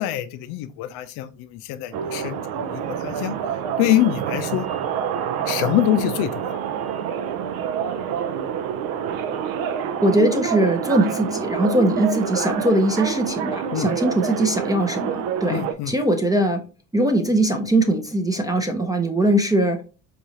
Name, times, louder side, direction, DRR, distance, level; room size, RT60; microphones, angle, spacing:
voice 1, 0.0-3.3 3.8-4.7 5.5-6.5 13.7-13.9 15.5-15.9, left 13 dB, 70° left, 0.6 m, -24 dB
sound 1, 1.9-15.7, right 8 dB, 65° right, 0.5 m, -27 dB
voice 2, 10.0-16.6 16.9-19.8, right 1 dB, 10° right, 0.6 m, -21 dB
4.8 x 2.6 x 2.7 m
hypercardioid pair, 70°, 40 cm